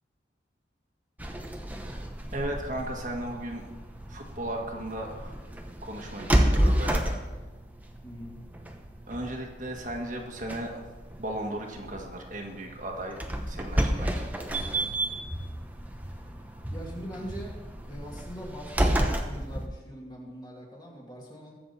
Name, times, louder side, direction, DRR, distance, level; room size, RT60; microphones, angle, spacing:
sound 1, 1.2-19.7, right 1 dB, 10° right, 0.9 m, -31 dB
voice 1, 2.3-3.7 4.1-5.3 5.8-7.1 9.1-10.9 11.2-13.2 13.5-14.3, right 1 dB, 45° right, 1 dB, 1.7 m, -36 dB
voice 2, 8.0-8.4 16.7-21.5, equal, 25° left, -2 dB, 2.5 m, -42 dB
21.0 x 7.6 x 4.2 m, 1.2 s
head